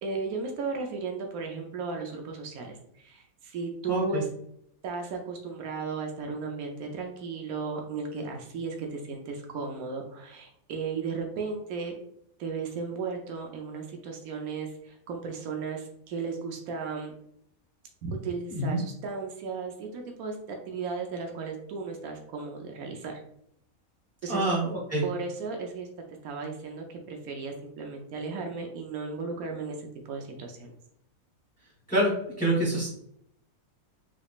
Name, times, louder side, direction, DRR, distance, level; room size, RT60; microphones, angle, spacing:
voice 1, 0.0-4.3 4.8-12.0 12.4-17.1 18.0-23.2 24.2-24.4 25.0-25.9 26.2-30.7, right 4 dB, 90° right, 2 dB, 1.1 m, -35 dB
voice 2, 3.9-4.2 18.5-18.8 24.3-25.0 31.9-32.1 32.4-32.9, right 1 dB, 5° left, -6 dB, 0.9 m, -26 dB
3.7 x 3.5 x 2.4 m, 0.71 s
omnidirectional pair, 1.5 m